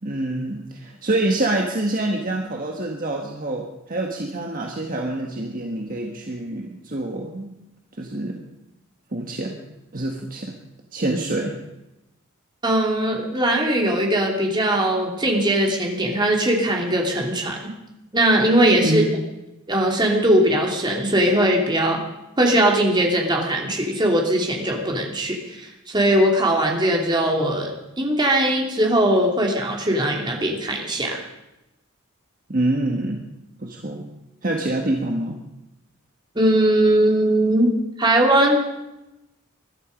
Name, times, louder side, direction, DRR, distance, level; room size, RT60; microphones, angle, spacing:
voice 1, 0.0-7.5 8.0-8.4 9.1-9.6 9.9-10.6 10.9-11.6 18.8-19.1 32.5-33.2 33.6-34.1 34.4-35.4, right 1 dB, 40° right, 1 dB, 1.5 m, -26 dB
voice 2, 12.6-17.6 18.1-19.0 19.7-22.0 22.4-31.2 36.3-37.7 38.0-38.6, right 1 dB, 20° right, 0 dB, 2.9 m, -20 dB
21.5 x 12.0 x 5.2 m, 0.94 s
head